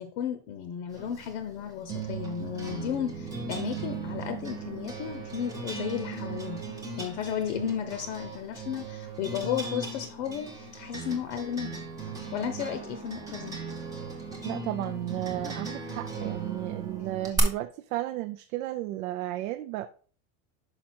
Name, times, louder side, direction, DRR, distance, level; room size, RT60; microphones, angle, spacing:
voice 1, 0.0-11.8 12.3-13.6, left 9 dB, 50° left, 0.7 m, -34 dB
sound 1, 0.9-17.4, right 4 dB, 10° right, 0.6 m, -37 dB
voice 2, 14.4-19.9, right 15 dB, 65° right, 0.5 m, -34 dB
5.9 x 5.2 x 4.3 m
supercardioid pair, 180°, 45 cm